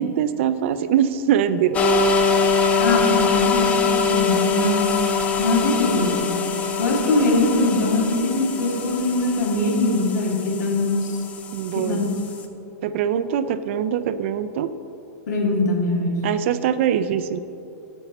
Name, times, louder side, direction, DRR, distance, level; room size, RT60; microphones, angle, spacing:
voice 1, 0.0-1.9 11.5-12.0 12.8-14.7 16.2-17.4, right 9 dB, 45° right, 12 dB, 0.4 m, -22 dB
sound 1, 1.7-12.4, left 5 dB, 15° left, 0.4 m, -23 dB
voice 2, 2.8-4.9 5.4-6.3 6.8-11.2 11.7-12.1 15.3-16.1, left 2 dB, 75° left, -1 dB, 2.1 m, -22 dB
9.8 x 7.1 x 4.1 m, 2.8 s
supercardioid pair, 160°, 9 cm